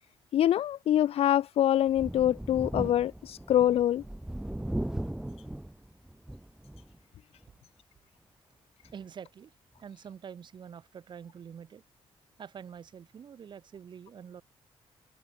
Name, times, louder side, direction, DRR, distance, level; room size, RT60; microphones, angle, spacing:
voice 1, 0.3-4.0, left 11 dB, 70° left, 0.8 m, -25 dB
Thunder, 1.9-7.0 7.4-7.5 8.9-9.0, right 1 dB, 5° right, 0.7 m, -38 dB
voice 2, 8.9-9.5 9.8-11.8 12.4-14.4, right 7 dB, 50° right, 6.9 m, -46 dB
open air
wide cardioid pair, 155°, 10 cm